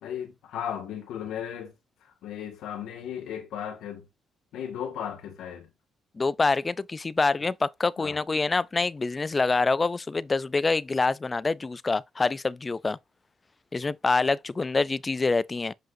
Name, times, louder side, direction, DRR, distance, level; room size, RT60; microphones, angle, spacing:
voice 1, 0.0-1.7 2.0-4.1 4.5-5.7 8.0-8.2, left 9 dB, 85° left, 1.8 m, -36 dB
voice 2, 6.2-13.0 13.7-15.7, left 3 dB, 25° left, 0.4 m, -26 dB
7.5 x 5.2 x 2.6 m
cardioid pair, 90°, 0 cm